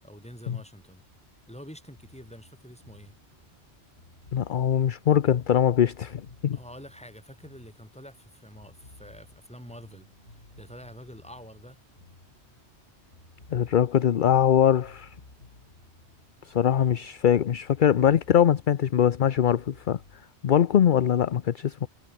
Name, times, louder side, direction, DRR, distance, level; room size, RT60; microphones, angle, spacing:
voice 1, 0.0-1.0 1.5-3.1 6.5-11.8, equal, 5° left, 6.4 m, -47 dB
sound 1, 1.9-8.3 8.5-12.8 13.1-17.4 17.7-20.2, left 2 dB, 80° left, 4.6 m, -54 dB
voice 2, 4.3-6.6 13.5-15.1 16.5-20.0 20.4-21.9, left 9 dB, 50° left, 0.7 m, -22 dB
omnidirectional pair, 1.2 m